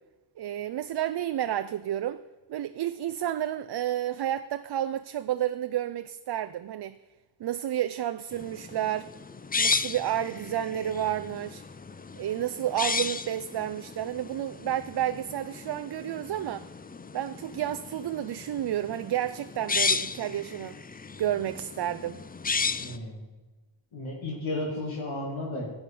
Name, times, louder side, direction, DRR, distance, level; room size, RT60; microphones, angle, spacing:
voice 1, 0.4-2.2 2.5-7.0 7.4-9.1 9.6-11.6 12.2-16.7 17.1-20.8 21.2-22.2, right 11 dB, 60° right, 0.5 m, -31 dB
sound 1, 8.3-23.0, left 4 dB, 20° left, 0.5 m, -34 dB
voice 2, 22.8-23.2 23.9-25.7, left 1 dB, 85° left, 2.4 m, -33 dB
11.5 x 8.1 x 5.4 m
cardioid pair, 55°, 47 cm